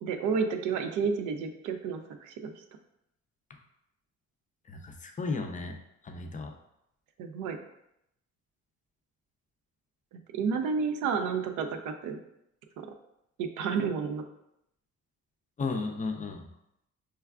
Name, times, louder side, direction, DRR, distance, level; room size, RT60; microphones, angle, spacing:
voice 1, 0.0-2.5 7.2-7.6 10.3-12.2 12.8-12.9 13.4-14.2, right 5 dB, 85° right, 7 dB, 0.5 m, -30 dB
voice 2, 4.7-5.8 6.0-6.5 15.6-16.5, left 3 dB, 25° left, 4 dB, 0.4 m, -34 dB
4.5 x 2.3 x 2.3 m, 0.80 s
cardioid pair, 90°, 30 cm